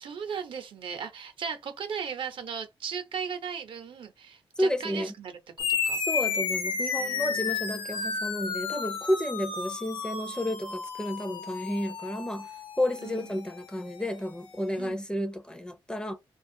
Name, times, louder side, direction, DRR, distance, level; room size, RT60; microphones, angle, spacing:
voice 1, 0.0-6.0 7.0-7.8 13.0-13.4 14.8-15.0, right 6 dB, 70° right, 0.6 m, -37 dB
voice 2, 4.6-5.1 5.9-12.5 12.8-16.1, left 1 dB, 10° left, 0.4 m, -31 dB
sound 1, 5.6-14.5, left 5 dB, 75° left, 0.7 m, -33 dB
2.5 x 2.3 x 2.6 m
wide cardioid pair, 125°, 9 cm